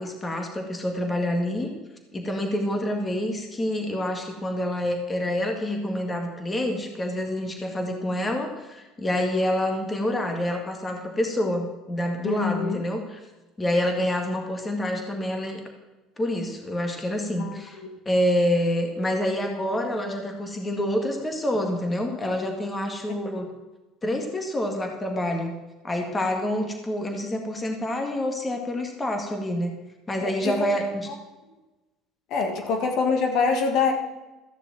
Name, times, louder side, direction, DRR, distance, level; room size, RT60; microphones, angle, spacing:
voice 1, 0.0-1.7 2.1-13.2 13.6-15.6 16.2-17.8 18.1-23.5 24.0-25.5 25.8-29.7 30.1-31.1, left 1 dB, 15° left, 3 dB, 2.0 m, -27 dB
voice 2, 12.2-12.8 17.4-17.9 30.2-30.7 32.3-33.9, left 5 dB, 60° left, 4 dB, 1.9 m, -25 dB
14.5 x 6.8 x 7.6 m, 1.1 s
cardioid pair, 125°, 0 cm